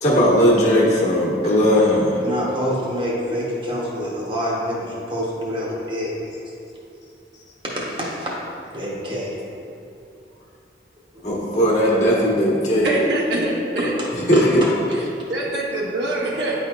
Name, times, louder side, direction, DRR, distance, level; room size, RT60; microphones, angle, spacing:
voice 1, 0.0-2.2 11.2-12.9 14.3-14.6, equal, 40° left, -6 dB, 1.3 m, -17 dB
voice 2, 2.1-6.3 7.6-8.4 8.7-9.4 14.0-14.7, equal, 25° right, -4 dB, 1.0 m, -27 dB
voice 3, 12.8-13.9 14.9-16.5, right 1 dB, 80° right, -4 dB, 1.1 m, -24 dB
9.5 x 4.3 x 2.4 m, 2.6 s
head